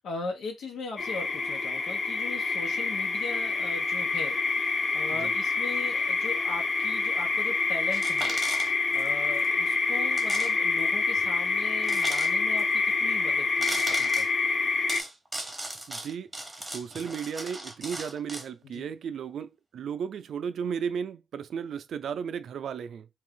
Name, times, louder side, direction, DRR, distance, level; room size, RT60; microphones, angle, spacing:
voice 1, 0.0-14.3 18.7-18.9, left 3 dB, 80° left, 0.9 m, -39 dB
sound 1, 1.0-15.0, left 4 dB, 40° left, 0.6 m, -27 dB
sound 2, 7.9-9.1 9.3-9.5 10.1-10.5 10.8-10.9 11.8-12.6 13.6-14.3 14.9-18.5, right 1 dB, 10° right, 1.0 m, -37 dB
voice 2, 15.9-16.3 16.6-23.1, right 7 dB, 75° right, 0.4 m, -34 dB
3.4 x 2.4 x 3.6 m
cardioid pair, 95°, 0 cm